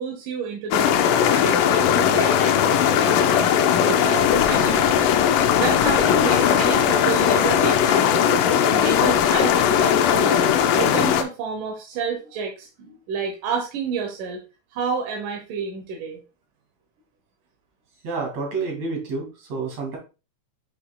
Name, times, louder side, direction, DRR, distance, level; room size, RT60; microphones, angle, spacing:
voice 1, 0.0-3.5 3.9-10.5 10.7-14.4 14.7-16.2, right 5 dB, 70° right, 2 dB, 2.3 m, -30 dB
sound 1, 0.7-11.2, left 9 dB, 80° left, 2.0 m, -18 dB
sound 2, 1.7-7.7, left 5 dB, 55° left, 2.7 m, -41 dB
voice 2, 18.0-20.0, right 4 dB, 50° right, 0 dB, 3.0 m, -29 dB
7.8 x 5.9 x 2.2 m, 0.31 s
omnidirectional pair, 4.3 m